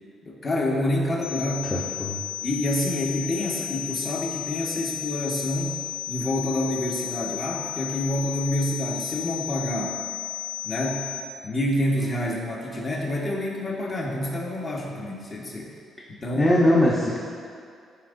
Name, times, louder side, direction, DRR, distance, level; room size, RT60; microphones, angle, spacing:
voice 1, 0.2-1.7 2.4-5.7 6.1-10.0 10.6-11.1 11.4-15.7 16.1-16.5, left 1 dB, 40° left, -2 dB, 1.2 m, -27 dB
sound 1, 1.2-11.2, left 11 dB, 85° left, 0.9 m, -34 dB
voice 2, 1.6-2.2 16.3-17.2, left 1 dB, 20° left, -5 dB, 0.8 m, -21 dB
10.0 x 4.4 x 2.6 m, 2.3 s
cardioid pair, 90°, 0 cm